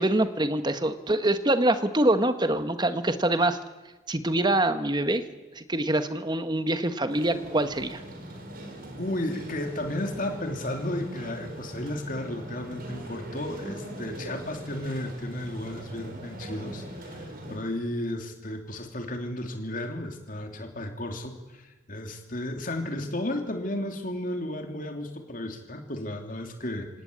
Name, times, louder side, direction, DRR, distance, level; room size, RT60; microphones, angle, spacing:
voice 1, 0.0-3.6 4.1-5.2 5.5-8.0, right 1 dB, 20° right, 10 dB, 1.2 m, -25 dB
sound 1, 7.1-17.6, right 1 dB, 45° right, 4.3 m, -41 dB
voice 2, 9.0-26.9, left 1 dB, 45° left, 5 dB, 3.0 m, -33 dB
26.5 x 18.0 x 8.6 m, 1.2 s
head